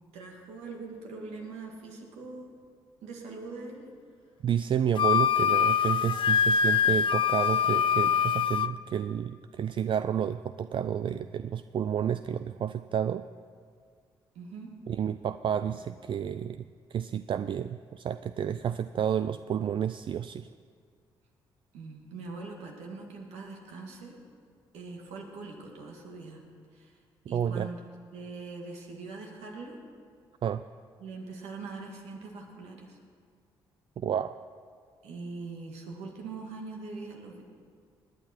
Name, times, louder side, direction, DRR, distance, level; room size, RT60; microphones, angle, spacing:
voice 1, 0.1-2.5 3.0-3.8 14.4-14.7 21.7-24.2 24.7-26.4 26.7-27.0 27.3-27.8 28.1-29.8 31.0-33.0 35.0-37.4, right 3 dB, 80° right, 1 dB, 2.1 m, -42 dB
voice 2, 4.4-13.3 14.9-16.6 16.9-20.5 27.3-27.7 30.4-30.6 34.0-34.4, right 9 dB, 50° right, 12 dB, 0.4 m, -30 dB
Wind instrument woodwind instrument, 5.0-8.7, left 7 dB, 50° left, 0.4 m, -24 dB
19.0 x 9.4 x 4.5 m, 2.1 s
supercardioid pair, 55°, 11 cm